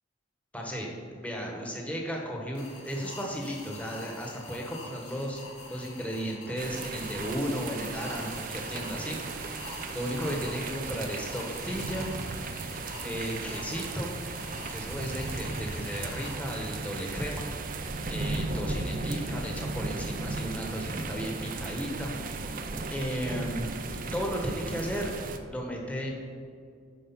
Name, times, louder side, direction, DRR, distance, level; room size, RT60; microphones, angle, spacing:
voice 1, 0.5-5.4 5.7-9.2 9.4-12.1 13.0-14.2 14.7-17.5 18.1-22.1 22.9-23.9 24.1-25.1 25.5-26.1, equal, 5° left, -1 dB, 1.4 m, -34 dB
sound 1, 2.5-17.3, left 2 dB, 85° left, 2.2 m, -46 dB
sound 2, 6.6-25.4, right 3 dB, 45° right, 0.6 m, -36 dB
10.5 x 4.7 x 5.9 m, 2.3 s
head